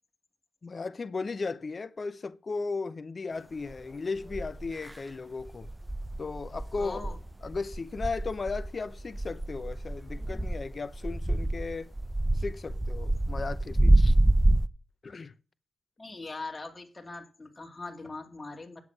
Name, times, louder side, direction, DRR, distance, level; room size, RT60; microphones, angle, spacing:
voice 1, 0.6-5.7 6.2-7.0 7.4-11.9 12.3-14.1 15.0-15.3, left 4 dB, 50° left, 0.7 m, -36 dB
sound 1, 3.7-3.8 4.3-5.0 5.4-14.7, right 1 dB, 5° right, 0.8 m, -27 dB
voice 2, 6.8-7.2 16.0-18.8, left 3 dB, 30° left, 2.6 m, -41 dB
9.4 x 8.3 x 6.1 m
supercardioid pair, 45°, 0 cm